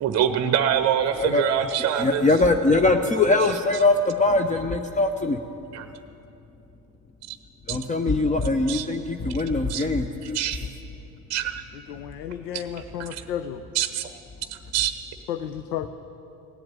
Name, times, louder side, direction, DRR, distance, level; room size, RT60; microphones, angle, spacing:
voice 1, 0.0-2.3 5.7-5.9 7.7-7.8 8.7-8.8 9.7-9.8 10.2-10.6 11.3-11.6 13.7-14.1 14.7-14.9, right 9 dB, 35° right, 9 dB, 0.8 m, -24 dB
voice 2, 1.1-1.5 2.0-5.4 7.7-10.4, left 2 dB, 15° left, 6 dB, 0.6 m, -22 dB
voice 3, 11.9-13.7 15.3-15.9, left 9 dB, 85° left, 10 dB, 0.7 m, -32 dB
17.0 x 7.8 x 9.0 m, 2.9 s
hypercardioid pair, 75°, 48 cm